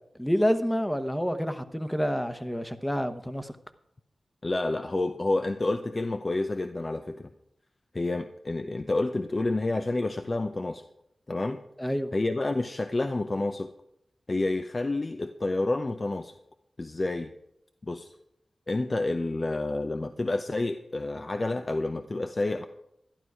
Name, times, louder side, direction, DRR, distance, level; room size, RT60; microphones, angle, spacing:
voice 1, 0.2-3.5 11.8-12.1, equal, 10° left, 9 dB, 1.0 m, -28 dB
voice 2, 4.4-7.3 7.9-10.8 11.3-11.6 12.1-13.7 14.3-16.3 16.8-17.3 17.8-18.1 18.7-22.6, left 2 dB, 45° left, 8 dB, 0.6 m, -29 dB
12.0 x 11.0 x 4.8 m, 0.78 s
cardioid pair, 40°, 0 cm